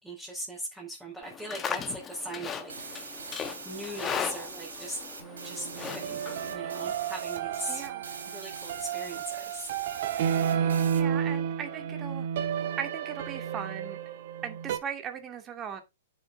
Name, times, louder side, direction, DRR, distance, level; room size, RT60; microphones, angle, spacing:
voice 1, 0.0-3.3 3.6-5.0 5.4-6.2 6.5-7.8 8.2-9.7, right 1 dB, 5° right, 4.8 m, -39 dB
Livestock farm animals working animals, 1.2-6.9, left 7 dB, 20° left, 1.4 m, -38 dB
sound 1, 2.7-11.0, right 5 dB, 80° right, 3.4 m, -43 dB
sound 2, 5.2-14.8, right 8 dB, 55° right, 1.5 m, -32 dB
voice 2, 7.7-8.0 10.9-12.3 12.8-14.0 14.4-15.8, right 7 dB, 25° right, 2.4 m, -38 dB
9.6 x 7.5 x 4.0 m
hypercardioid pair, 120°, 0 cm